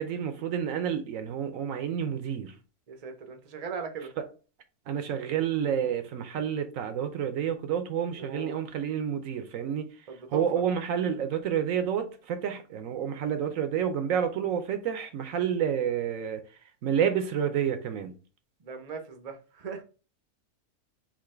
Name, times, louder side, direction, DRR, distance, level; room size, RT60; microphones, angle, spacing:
voice 1, 0.0-2.5 4.9-9.9 10.3-16.4 16.8-18.1, right 8 dB, 70° right, 1.0 m, -29 dB
voice 2, 2.9-4.1 8.2-8.5 10.1-10.4 18.6-19.8, right 5 dB, 35° right, 0.6 m, -39 dB
3.8 x 2.9 x 4.2 m
omnidirectional pair, 1.5 m